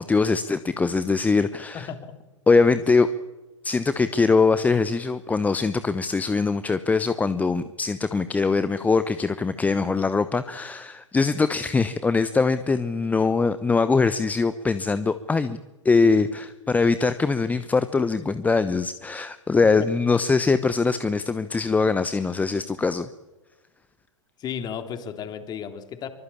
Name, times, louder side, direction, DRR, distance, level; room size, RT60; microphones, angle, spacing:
voice 1, 0.0-1.9 2.5-3.1 3.6-23.1, left 4 dB, 10° left, 13 dB, 0.9 m, -22 dB
voice 2, 1.7-2.1 19.8-19.9 24.4-26.1, left 8 dB, 25° left, 7 dB, 3.4 m, -34 dB
25.5 x 24.0 x 8.7 m, 1.1 s
figure-of-eight pair, 100°, 16 cm